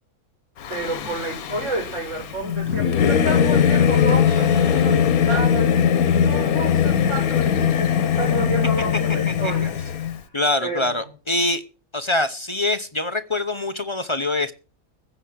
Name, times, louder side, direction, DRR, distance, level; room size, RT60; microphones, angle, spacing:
Singing / Musical instrument, 0.6-10.2, left 8 dB, 85° left, 1.4 m, -20 dB
voice 1, 0.7-7.5 7.8-9.7 10.6-11.0, right 1 dB, 55° right, 1 dB, 6.4 m, -30 dB
sound 1, 1.8-1.9 2.3-10.3, right 3 dB, 25° right, 6.1 m, -36 dB
voice 2, 10.3-11.6 11.9-14.5, left 2 dB, 25° left, 10 dB, 0.7 m, -24 dB
15.0 x 8.2 x 6.4 m, 0.35 s
omnidirectional pair, 1.5 m